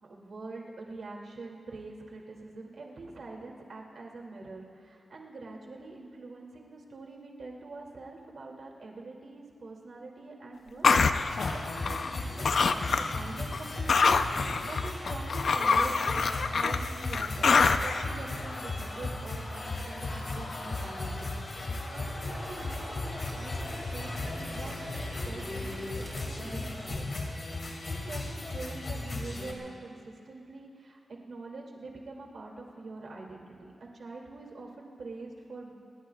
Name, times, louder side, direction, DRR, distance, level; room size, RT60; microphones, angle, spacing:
voice 1, 0.0-10.9 11.1-27.3 27.6-35.7, right 3 dB, 60° right, -1 dB, 2.6 m, -44 dB
sound 1, 10.8-12.2 12.4-13.2 13.5-18.0, left 4 dB, 60° left, 0.6 m, -25 dB
sound 2, 11.3-29.5, left 2 dB, 45° left, 2.3 m, -36 dB
sound 3, 21.9-27.0, right 1 dB, 25° right, 2.8 m, -45 dB
28.0 x 19.5 x 2.4 m, 2.4 s
wide cardioid pair, 160°, 0 cm